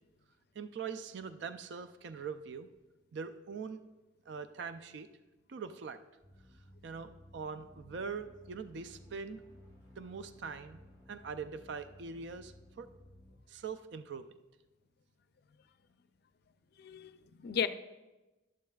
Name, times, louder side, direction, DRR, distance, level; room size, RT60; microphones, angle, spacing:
voice 1, 0.5-2.7 3.1-3.8 4.3-5.1 5.5-6.0 6.8-9.4 10.0-10.8 11.1-12.9 13.5-14.3, right 5 dB, 65° right, 11 dB, 0.4 m, -42 dB
sound 1, 6.2-13.4, equal, 35° right, 2.2 m, -57 dB
voice 2, 16.8-17.7, left 7 dB, 55° left, 12 dB, 0.4 m, -35 dB
12.0 x 10.5 x 2.3 m, 1.1 s
head